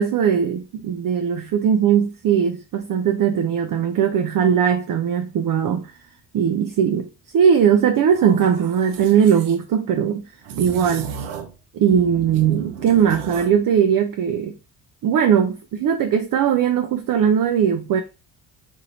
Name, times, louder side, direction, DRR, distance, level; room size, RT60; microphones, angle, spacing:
voice 1, 0.0-6.0 6.3-10.2 10.6-11.1 11.7-14.6 15.0-18.0, right 8 dB, 45° right, 0.5 m, -19 dB
sound 1, 8.1-9.6 10.4-11.6 11.9-13.6, right 7 dB, 80° right, 0.8 m, -35 dB
2.8 x 2.7 x 4.2 m
supercardioid pair, 60°, 49 cm